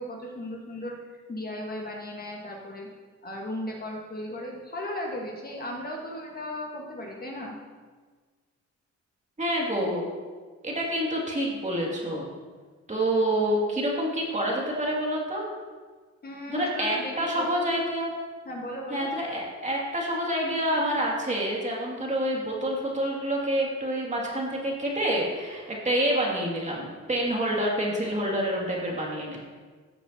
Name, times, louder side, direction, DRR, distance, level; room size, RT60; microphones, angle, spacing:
voice 1, 0.0-2.9 3.2-7.6 16.2-17.5 18.4-19.1, left 1 dB, 30° left, -1 dB, 1.5 m, -36 dB
voice 2, 9.4-10.1 10.6-12.3 12.9-15.4 16.5-18.1 18.9-29.4, right 1 dB, 25° right, -2 dB, 2.3 m, -27 dB
14.0 x 7.2 x 2.8 m, 1.5 s
cardioid pair, 90°, 30 cm